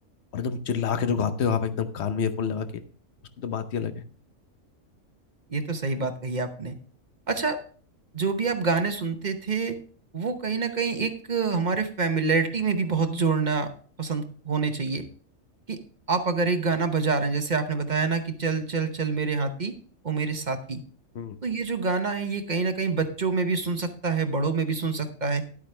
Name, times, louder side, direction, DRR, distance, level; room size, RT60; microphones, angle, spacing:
voice 1, 0.3-2.8 3.4-4.0 21.1-21.4, left 6 dB, 60° left, 11 dB, 1.1 m, -27 dB
voice 2, 5.5-6.7 7.3-7.6 8.1-9.8 10.1-13.7 14.0-15.0 15.7-15.8 16.1-19.7 20.0-20.8 21.4-25.4, right 4 dB, 40° right, 7 dB, 0.9 m, -26 dB
11.0 x 8.6 x 3.3 m, 0.43 s
omnidirectional pair, 1.4 m